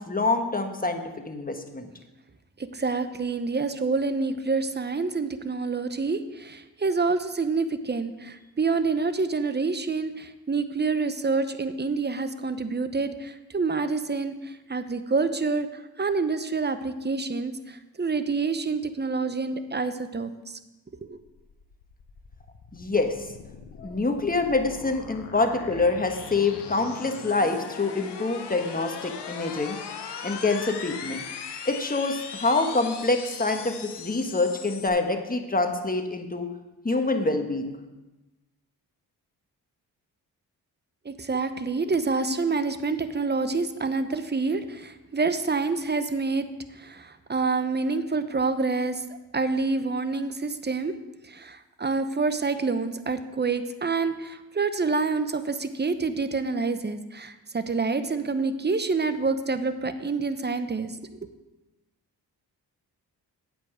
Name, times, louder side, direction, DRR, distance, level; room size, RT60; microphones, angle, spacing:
voice 1, 0.0-1.9 22.7-23.3 23.8-29.8 30.2-31.2 31.6-36.5 36.8-37.8, left 3 dB, 20° left, 5 dB, 1.4 m, -26 dB
voice 2, 2.7-14.3 14.7-20.6 21.0-21.1 41.0-46.4 46.7-49.0 49.3-50.9 51.3-60.9, right 4 dB, 25° right, 11 dB, 0.9 m, -27 dB
sound 1, 21.1-34.9, left 6 dB, 70° left, 1.1 m, -40 dB
8.4 x 5.5 x 6.6 m, 1.1 s
supercardioid pair, 40°, 43 cm